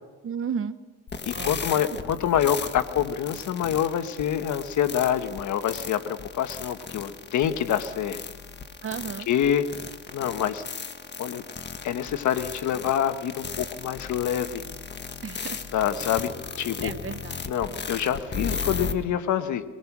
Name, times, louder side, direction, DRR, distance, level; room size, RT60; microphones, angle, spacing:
voice 1, 0.2-0.8 1.3-1.6 8.8-9.3 15.2-15.6 16.8-17.4, right 7 dB, 45° right, 13 dB, 1.0 m, -33 dB
sound 1, 1.1-18.9, left 5 dB, 35° left, 1.5 m, -36 dB
voice 2, 1.3-8.2 9.3-9.6 10.1-10.6 11.2-11.4 11.8-14.6 15.7-16.3 16.6-16.9 17.5-19.6, left 9 dB, 70° left, 9 dB, 1.4 m, -26 dB
23.0 x 19.5 x 6.1 m, 1.3 s
cardioid pair, 90°, 30 cm